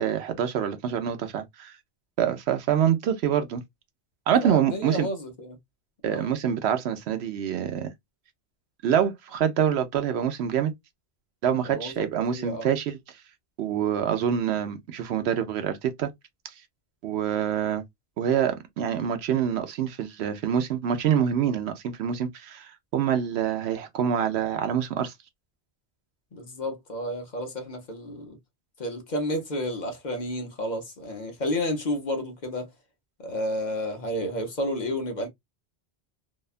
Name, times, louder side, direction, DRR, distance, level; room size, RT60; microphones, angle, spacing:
voice 1, 0.0-1.7 2.2-3.6 4.3-5.1 6.0-7.9 8.8-10.7 11.4-13.0 13.6-16.1 17.0-17.8 18.2-25.1, right 8 dB, 75° right, 0.8 m, -26 dB
voice 2, 4.4-5.6 6.1-6.3 11.7-12.7 26.3-28.4 28.8-32.7 33.2-35.3, left 1 dB, 50° left, 0.8 m, -31 dB
2.8 x 2.2 x 2.3 m
omnidirectional pair, 1.1 m